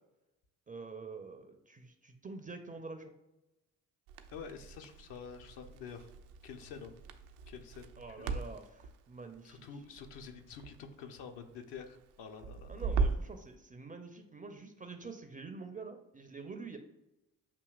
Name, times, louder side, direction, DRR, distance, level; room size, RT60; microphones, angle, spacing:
voice 1, 0.7-3.1 8.0-9.7 12.7-16.8, right 4 dB, 20° right, 6 dB, 0.4 m, -46 dB
Crackle, 4.1-13.4, right 4 dB, 75° right, 0.5 m, -39 dB
voice 2, 4.3-6.1 6.4-7.0 7.5-7.9 8.2-8.5 9.4-12.8, left 6 dB, 60° left, 5 dB, 0.7 m, -48 dB
6.9 x 2.8 x 2.3 m, 0.95 s
hypercardioid pair, 40°, 47 cm